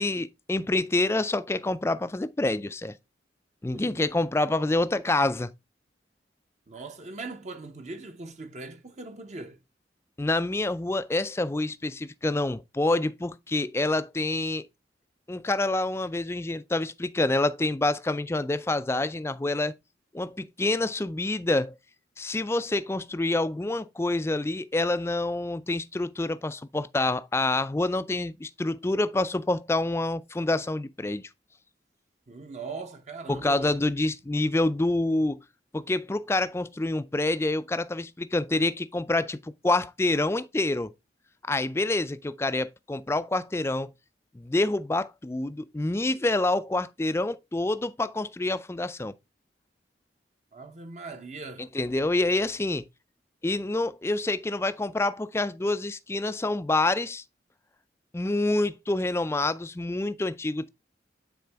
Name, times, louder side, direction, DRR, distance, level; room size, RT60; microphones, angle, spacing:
voice 1, 0.0-2.9 3.6-5.5 10.2-14.7 15.3-19.7 20.1-21.7 22.2-31.3 33.3-35.4 35.7-40.9 41.5-43.9 44.3-49.1 51.6-52.8 53.4-57.2 58.1-60.7, left 2 dB, 15° left, 0.3 m, -27 dB
voice 2, 3.7-4.1 6.7-9.6 32.3-33.8 50.5-51.7, right 3 dB, 40° right, 0.8 m, -40 dB
9.3 x 4.3 x 3.4 m
head